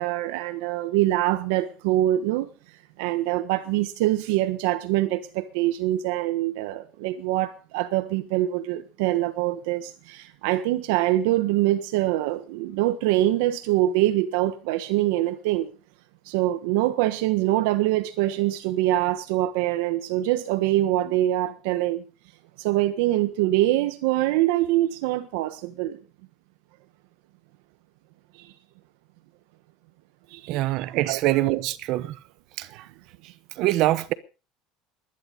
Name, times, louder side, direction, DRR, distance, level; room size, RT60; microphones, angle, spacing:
voice 1, 0.0-2.5 3.0-15.7 16.2-22.0 22.6-26.0 28.4-28.5 30.3-31.2, right 15 dB, 75° right, 1.4 m, -24 dB
voice 2, 30.5-32.1 32.6-32.9 33.6-34.1, right 16 dB, 50° right, 0.9 m, -24 dB
21.0 x 11.5 x 5.2 m
cardioid pair, 170°, 0 cm